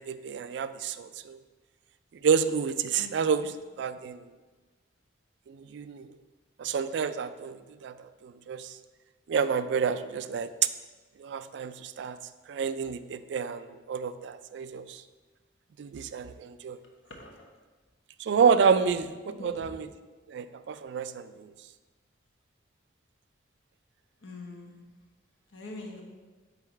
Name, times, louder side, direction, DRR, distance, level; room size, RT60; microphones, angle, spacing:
voice 1, 0.0-1.4 2.2-4.2 5.5-6.1 6.6-8.8 9.3-10.5 11.2-12.2 12.5-15.0 15.8-16.8 18.2-19.9 20.3-21.5, right 6 dB, 65° right, 12 dB, 0.3 m, -29 dB
voice 2, 17.1-17.5 19.4-19.7 24.2-24.7 25.5-26.0, left 2 dB, 85° left, 1 dB, 1.1 m, -43 dB
5.6 x 4.1 x 4.5 m, 1.3 s
head